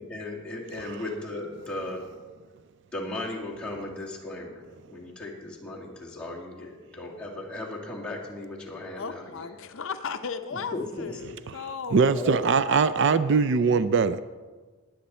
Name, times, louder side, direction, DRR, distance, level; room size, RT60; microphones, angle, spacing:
voice 1, 0.0-2.1 2.9-9.5 10.5-11.2 12.1-12.5, left 1 dB, 5° left, -6 dB, 2.3 m, -36 dB
voice 2, 9.0-12.1 12.7-12.8, left 5 dB, 65° left, 8 dB, 0.6 m, -36 dB
voice 3, 11.9-14.2, right 5 dB, 55° right, 14 dB, 0.4 m, -22 dB
20.5 x 8.0 x 4.3 m, 1.4 s
head